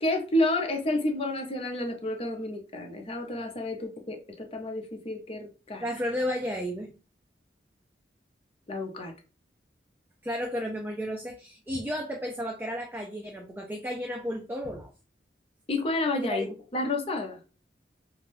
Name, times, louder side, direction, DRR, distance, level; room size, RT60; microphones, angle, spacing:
voice 1, 0.0-5.8 8.7-9.1 15.7-17.4, left 1 dB, 35° left, 3 dB, 0.6 m, -30 dB
voice 2, 5.8-6.9 10.2-14.9 16.2-16.4, equal, 10° right, 1 dB, 0.3 m, -33 dB
2.5 x 2.2 x 3.3 m, 0.34 s
head